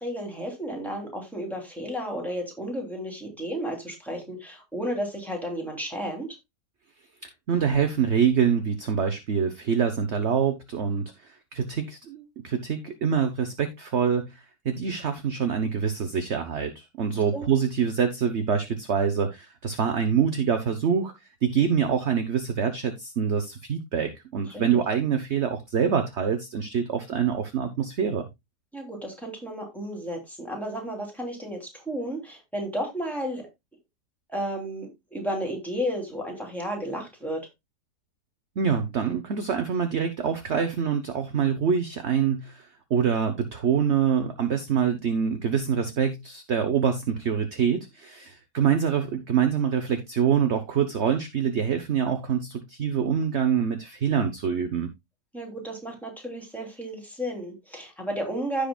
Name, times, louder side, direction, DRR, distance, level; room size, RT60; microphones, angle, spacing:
voice 1, 0.0-6.3 17.1-17.4 24.5-24.8 28.7-33.4 34.3-37.5 55.3-58.7, equal, ahead, 2.9 m, -33 dB
voice 2, 7.2-21.1 21.4-28.3 38.6-54.9, right 7 dB, 50° right, 1.1 m, -25 dB
15.5 x 5.1 x 2.3 m
omnidirectional pair, 1.7 m